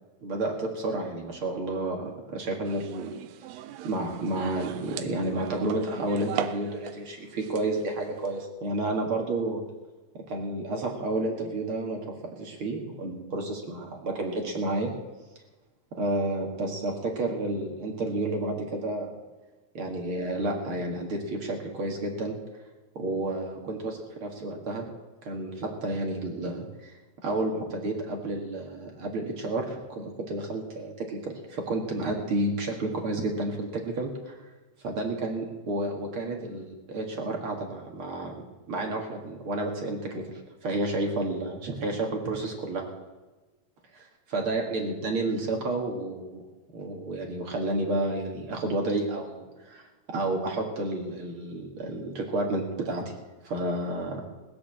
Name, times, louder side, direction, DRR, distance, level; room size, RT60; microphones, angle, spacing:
voice 1, 0.2-3.2 3.8-9.6 10.1-14.9 15.9-19.1 19.7-22.4 23.0-24.8 25.2-26.9 27.2-34.4 34.8-38.3 38.7-40.2 40.6-42.8 44.3-46.4 46.7-53.0 53.4-54.2, right 2 dB, 45° right, 1 dB, 2.1 m, -31 dB
sound 1, 2.6-7.0 7.3-8.5, right 11 dB, 80° right, 2.1 m, -39 dB
20.0 x 6.8 x 7.5 m, 1.2 s
omnidirectional pair, 4.4 m